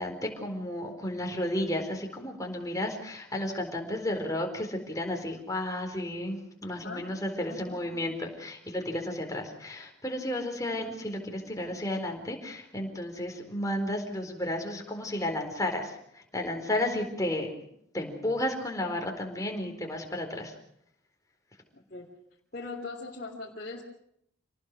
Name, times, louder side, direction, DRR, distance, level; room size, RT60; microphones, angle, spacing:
voice 1, 0.0-17.5 17.9-20.5, left 1 dB, 20° left, 2 dB, 4.3 m, -33 dB
voice 2, 6.7-7.1 7.5-8.0 21.7-22.1 22.5-23.8, left 3 dB, 45° left, -3 dB, 3.2 m, -40 dB
28.0 x 19.5 x 6.3 m, 0.72 s
head